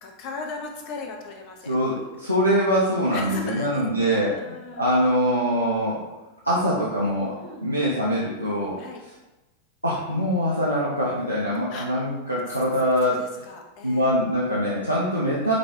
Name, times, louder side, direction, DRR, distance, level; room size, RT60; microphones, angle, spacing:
voice 1, 0.0-2.2 3.1-5.0 7.4-7.7 8.8-9.0 11.7-11.9 13.1-14.1, left 3 dB, 45° left, 2 dB, 0.6 m, -38 dB
voice 2, 1.7-6.0 6.4-8.8 9.8-13.5 13.8-15.5, equal, 90° right, -6 dB, 0.5 m, -23 dB
4.9 x 2.2 x 2.8 m, 1.1 s
figure-of-eight pair, 90°, 0 cm